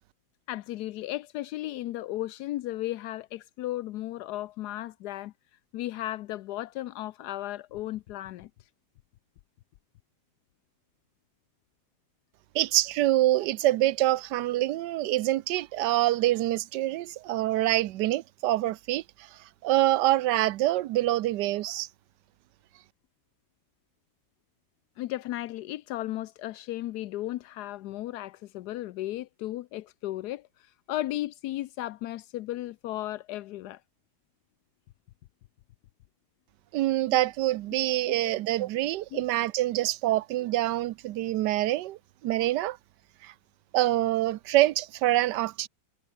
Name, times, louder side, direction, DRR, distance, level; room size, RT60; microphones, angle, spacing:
voice 1, 0.5-5.3 5.7-8.5 25.0-33.8 39.1-39.2, left 15 dB, 75° left, 0.9 m, -35 dB
voice 2, 12.5-19.0 19.6-21.9 36.7-42.8 43.2-43.3 43.7-45.7, right 15 dB, 70° right, 1.1 m, -25 dB
omnidirectional pair, 2.2 m